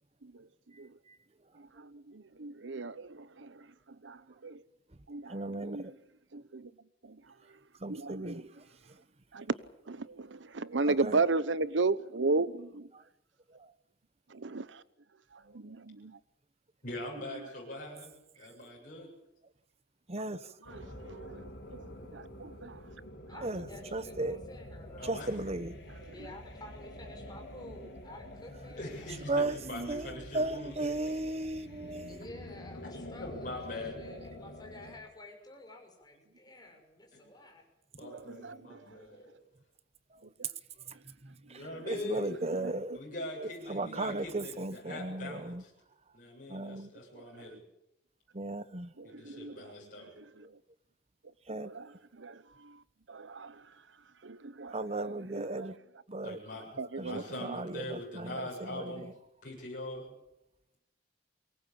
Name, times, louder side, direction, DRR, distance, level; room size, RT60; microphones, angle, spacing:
voice 1, 1.8-3.6 4.0-4.6 5.1-5.4 5.6-5.9 6.3-6.7 7.0-7.2 7.9-8.5 9.3-9.5 9.9-12.9 14.3-14.8 15.5-16.2 20.7-21.4 21.7-21.8 22.1-22.8 29.7-29.9 38.0-38.8 42.6-42.7 47.2-47.5 49.0-49.7 50.4-50.5 51.5-51.9 52.2-52.4 52.6-52.7 53.1-53.5 54.2-55.7 56.8-57.5, right 3 dB, 90° right, 1.0 m, -35 dB
voice 2, 5.3-5.9 7.8-8.4 10.8-11.2 20.1-20.4 23.4-23.6 23.9-24.4 25.1-25.7 29.3-29.5 29.9-30.0 30.3-32.2 41.9-43.0 43.7-45.6 46.5-46.9 48.3-48.9 51.5-51.7 54.7-55.7 56.1-56.4 57.0-58.4 58.7-59.1, right 2 dB, 35° right, 1.1 m, -35 dB
voice 3, 16.8-19.1 25.0-25.5 26.0-26.1 28.7-31.2 33.2-34.0 37.1-37.2 38.0-39.3 41.5-42.4 42.9-45.7 46.1-47.6 49.0-50.1 56.2-59.1 59.4-60.1, left 1 dB, 45° left, 7.7 m, -42 dB
sound 1, 20.6-35.0, left 1 dB, 65° left, 6.0 m, -47 dB
voice 4, 23.3-25.4 26.1-29.2 32.1-37.7 39.2-39.3, left 1 dB, 20° left, 6.1 m, -51 dB
23.5 x 19.0 x 8.8 m
head